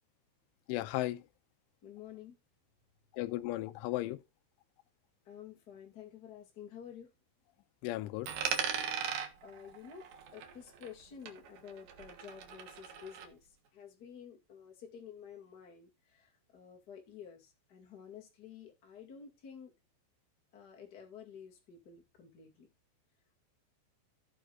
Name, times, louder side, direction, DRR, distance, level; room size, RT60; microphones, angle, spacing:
voice 1, 0.7-1.2 3.1-4.2 7.8-8.3, left 17 dB, 80° left, 3.1 m, -35 dB
voice 2, 1.8-2.4 5.2-7.1 9.4-10.1 10.3-19.7 20.5-22.7, left 8 dB, 55° left, 1.1 m, -51 dB
Coin (dropping), 8.2-11.0 11.3-13.3, right 7 dB, 80° right, 1.7 m, -39 dB
16.5 x 5.8 x 2.5 m
omnidirectional pair, 5.7 m